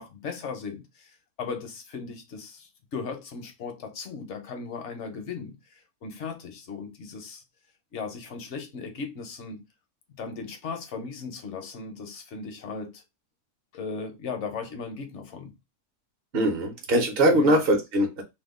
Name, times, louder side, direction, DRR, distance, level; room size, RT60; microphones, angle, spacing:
voice 1, 0.0-7.4 7.9-9.6 10.2-13.0 13.7-15.6 17.3-17.6, left 4 dB, 55° left, 0.9 m, -37 dB
voice 2, 16.3-18.2, right 1 dB, 45° right, 0.8 m, -22 dB
2.8 x 2.3 x 3.5 m
omnidirectional pair, 1.7 m